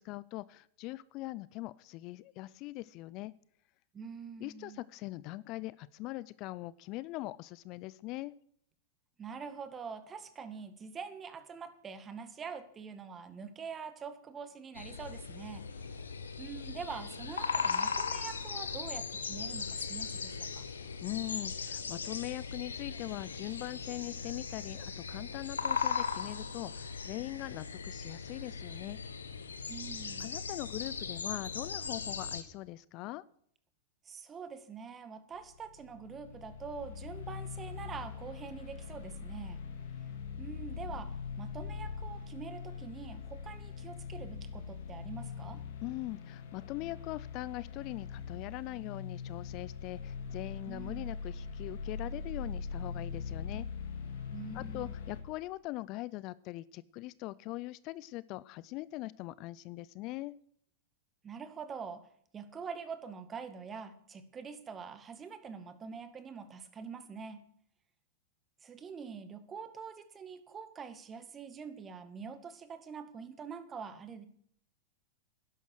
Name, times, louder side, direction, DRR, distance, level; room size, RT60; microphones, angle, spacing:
voice 1, 0.0-3.3 4.4-8.3 20.8-29.0 30.2-33.2 45.8-53.7 54.5-60.4, left 18 dB, 45° left, 20 dB, 0.4 m, -41 dB
voice 2, 3.9-4.8 9.2-16.0 16.4-20.6 29.7-30.3 34.0-39.6 40.4-45.6 50.7-51.1 54.3-54.9 61.2-62.0 62.3-67.5 68.6-74.3, right 6 dB, 25° right, 10 dB, 1.8 m, -45 dB
sound 1, 14.7-32.4, left 5 dB, 85° left, 1.3 m, -38 dB
sound 2, 35.4-55.2, left 5 dB, 65° left, 2.4 m, -42 dB
12.0 x 11.0 x 6.4 m, 0.63 s
hypercardioid pair, 100°, 0 cm